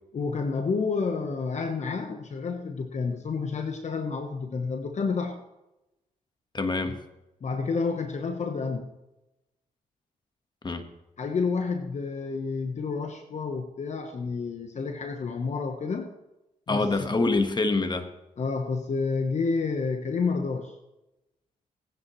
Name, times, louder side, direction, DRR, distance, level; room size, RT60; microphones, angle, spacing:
voice 1, 0.1-5.4 7.4-9.0 11.2-16.1 16.7-17.1 18.4-20.7, left 4 dB, 50° left, 6 dB, 1.0 m, -29 dB
voice 2, 6.5-7.0 10.6-10.9 16.7-18.1, left 3 dB, 30° left, 8 dB, 1.4 m, -25 dB
18.5 x 9.8 x 3.1 m, 0.97 s
cardioid pair, 65°, 15 cm